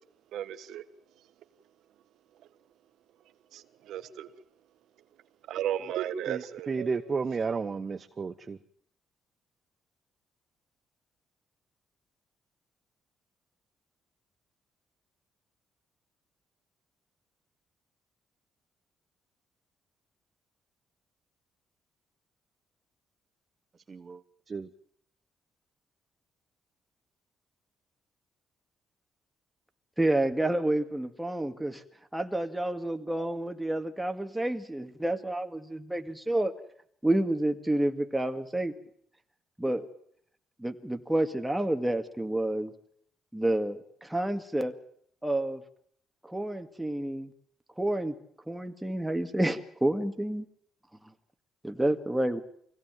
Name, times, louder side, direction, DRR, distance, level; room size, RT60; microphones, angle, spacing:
voice 1, 0.3-0.8 3.5-3.6 3.9-4.3 5.5-6.9, right 10 dB, 80° right, 1.3 m, -34 dB
voice 2, 6.3-8.6 23.9-24.2 24.5-24.7, right 5 dB, 35° right, 1.0 m, -33 dB
voice 3, 30.0-31.8 32.1-36.5 37.0-38.7 39.6-39.9 40.6-42.7 43.3-44.7 45.2-45.6 46.3-47.3 47.8-48.1 48.5-50.5 51.6-52.4, right 1 dB, 5° right, 2.1 m, -29 dB
24.0 x 17.0 x 9.2 m
cardioid pair, 90°, 0 cm